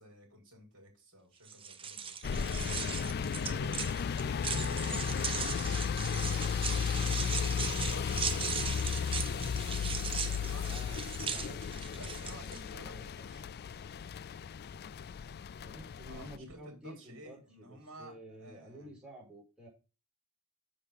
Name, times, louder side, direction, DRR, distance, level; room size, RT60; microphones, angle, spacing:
voice 1, 0.0-2.7 3.2-9.7 10.2-11.5 11.9-13.7 16.0-18.9, right 1 dB, 60° right, 2 dB, 5.0 m, -53 dB
sound 1, 1.4-12.6, right 6 dB, 25° right, 0.9 m, -39 dB
sound 2, 2.2-16.4, left 6 dB, 45° left, 0.4 m, -34 dB
sound 3, 6.1-12.1, left 3 dB, 30° left, 0.8 m, -51 dB
voice 2, 10.6-11.6 12.4-13.0 15.6-19.7, equal, 5° right, -3 dB, 4.8 m, -50 dB
7.0 x 6.7 x 5.4 m, 0.31 s
head